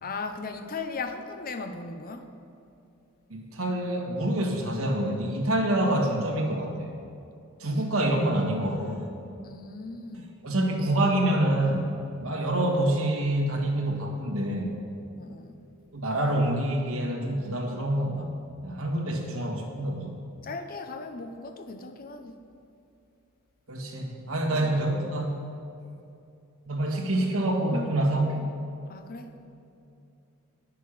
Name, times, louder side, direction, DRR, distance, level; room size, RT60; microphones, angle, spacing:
voice 1, 0.0-2.3 9.4-10.4 15.2-15.6 20.4-22.4 24.6-24.7 28.9-29.3, left 4 dB, 40° left, 7 dB, 0.7 m, -37 dB
voice 2, 3.3-6.9 7.6-9.0 10.4-11.9 12.2-14.7 15.9-18.3 18.6-20.1 23.7-25.4 26.7-28.5, right 1 dB, 70° right, 0 dB, 1.6 m, -26 dB
10.0 x 6.8 x 6.5 m, 2.6 s
head